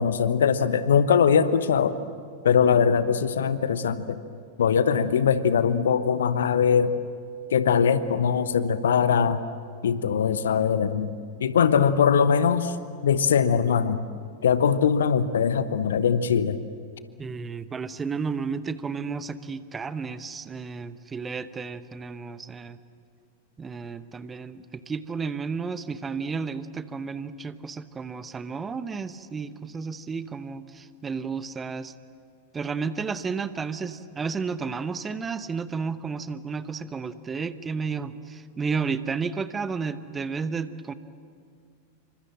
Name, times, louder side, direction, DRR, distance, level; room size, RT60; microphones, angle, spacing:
voice 1, 0.0-1.9 2.4-4.2 4.6-6.9 7.5-9.4 9.8-11.1 11.4-12.7 13.0-14.0 14.4-16.6, left 7 dB, 65° left, 13 dB, 1.1 m, -21 dB
voice 2, 17.2-22.8 23.6-31.9 32.5-40.9, right 5 dB, 15° right, 13 dB, 1.0 m, -32 dB
28.0 x 25.0 x 7.6 m, 2.2 s
figure-of-eight pair, 90°, 0 cm